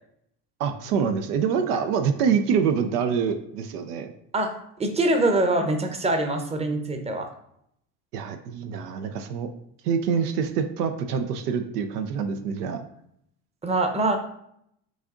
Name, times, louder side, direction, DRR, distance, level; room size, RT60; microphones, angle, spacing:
voice 1, 0.6-4.1 8.1-9.5 9.8-12.9, right 6 dB, 80° right, 7 dB, 0.5 m, -25 dB
voice 2, 4.3-7.3 13.6-14.2, right 2 dB, 15° right, 5 dB, 0.7 m, -24 dB
6.3 x 2.6 x 2.5 m, 0.72 s
hypercardioid pair, 65°, 47 cm